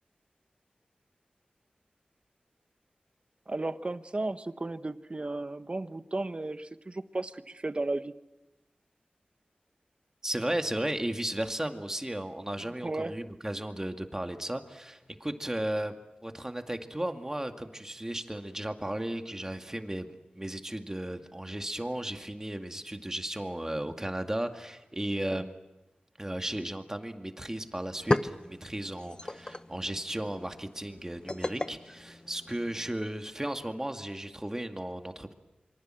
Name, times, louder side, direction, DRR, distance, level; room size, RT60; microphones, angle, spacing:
voice 1, 3.5-8.1 12.8-13.1 25.3-25.4, right 2 dB, 40° right, 11 dB, 1.3 m, -34 dB
voice 2, 10.2-15.9 16.2-25.6 26.2-35.3, right 1 dB, 20° right, 6 dB, 2.2 m, -35 dB
sound 1, 27.8-32.9, left 2 dB, 30° left, 0.9 m, -36 dB
27.0 x 25.0 x 7.7 m, 1.0 s
wide cardioid pair, 55°, 3 cm